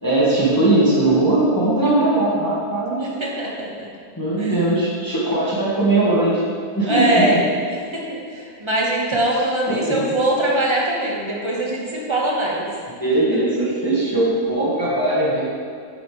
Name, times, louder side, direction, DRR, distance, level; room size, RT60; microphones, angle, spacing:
voice 1, 0.0-3.1 4.2-6.4 6.7-7.3 9.3-9.4 9.7-10.0 13.0-15.4, right 2 dB, 10° left, -8 dB, 1.8 m, -19 dB
voice 2, 3.0-3.9 4.4-4.6 6.8-7.4 7.9-8.0 8.3-12.6, right 1 dB, 15° right, -4 dB, 1.6 m, -22 dB
10.5 x 8.8 x 3.4 m, 2.3 s
omnidirectional pair, 1.8 m